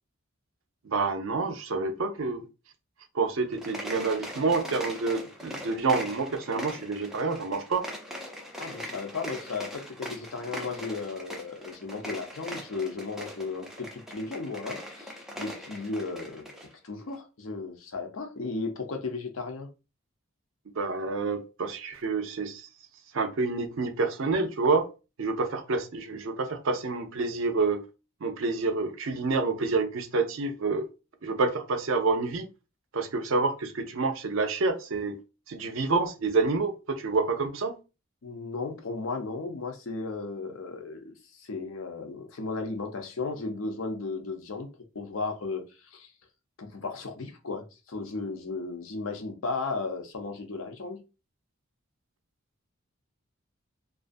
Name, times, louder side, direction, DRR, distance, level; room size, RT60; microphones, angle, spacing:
voice 1, 0.8-2.5 3.1-7.8 20.8-22.7 23.1-24.9 25.2-27.8 28.2-30.9 31.2-32.5 32.9-35.2 35.5-37.7, right 3 dB, 65° right, 0.5 m, -28 dB
sound 1, 3.5-16.7, equal, ahead, 0.4 m, -41 dB
voice 2, 8.6-16.5 16.8-19.7 38.2-44.7 44.9-45.6 45.9-46.1 46.6-51.0, left 3 dB, 70° left, 0.6 m, -35 dB
2.4 x 2.3 x 2.5 m
head